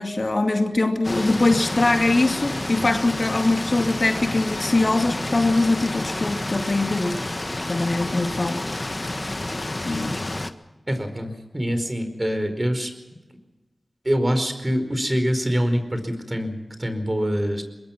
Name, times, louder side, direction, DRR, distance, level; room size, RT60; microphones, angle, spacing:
voice 1, 0.0-7.2 7.7-8.6 9.0-9.1 9.8-10.2, left 2 dB, 55° left, 4 dB, 2.5 m, -22 dB
sound 1, 1.0-10.5, left 2 dB, 35° left, 1.5 m, -29 dB
voice 2, 10.9-12.9 14.0-17.6, equal, 25° right, 8 dB, 4.8 m, -25 dB
22.5 x 22.0 x 6.0 m, 1.1 s
cardioid pair, 45°, 0 cm